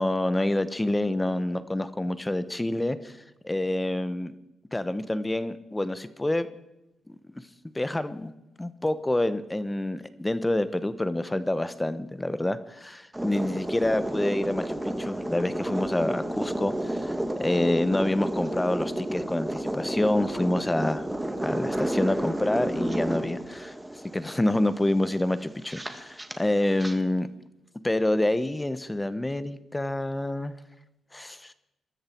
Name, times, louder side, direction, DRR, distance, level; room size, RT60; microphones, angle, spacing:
voice 1, 0.0-3.2 3.4-4.3 4.7-6.5 7.1-7.4 7.7-8.3 8.6-21.1 21.4-23.7 24.1-27.3 27.8-30.5 31.1-31.5, left 1 dB, 15° left, 13 dB, 1.1 m, -27 dB
sound 1, 13.1-27.0, right 1 dB, 10° right, 1.9 m, -31 dB
22.5 x 13.0 x 4.6 m, 0.91 s
cardioid pair, 75°, 0 cm